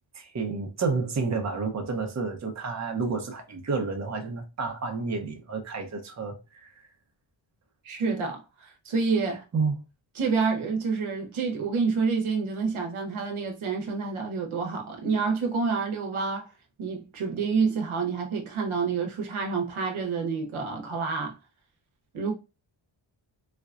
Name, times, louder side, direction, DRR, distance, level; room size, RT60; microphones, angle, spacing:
voice 1, 0.1-6.9 9.5-9.8, right 4 dB, 35° right, 0.8 m, -30 dB
voice 2, 7.8-9.4 10.2-16.5 16.8-21.3 22.1-22.3, right 5 dB, 80° right, 1.0 m, -28 dB
4.2 x 2.2 x 2.4 m
wide cardioid pair, 90°, 48 cm